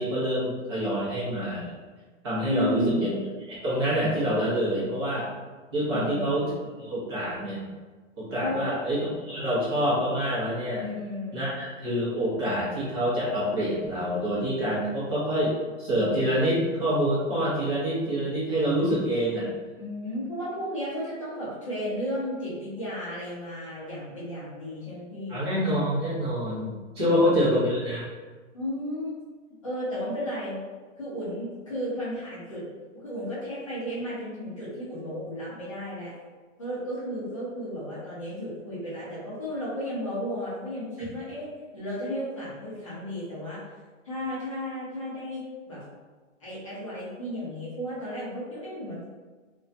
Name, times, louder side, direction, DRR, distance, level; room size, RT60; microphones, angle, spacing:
voice 1, 0.0-1.8 2.2-3.1 3.5-5.3 5.7-6.4 6.8-7.6 8.2-10.9 11.3-19.5 25.3-28.1, equal, 20° right, -9 dB, 0.6 m, -26 dB
voice 2, 2.5-3.1 5.9-6.5 8.4-8.7 10.8-11.5 19.8-25.4 27.0-27.5 28.5-29.2 29.6-30.6 31.0-32.6 32.9-36.1 36.6-43.6 44.0-45.8 46.4-49.1, equal, 25° left, -9 dB, 0.5 m, -33 dB
2.4 x 2.2 x 2.5 m, 1.3 s
hypercardioid pair, 175°, 39 cm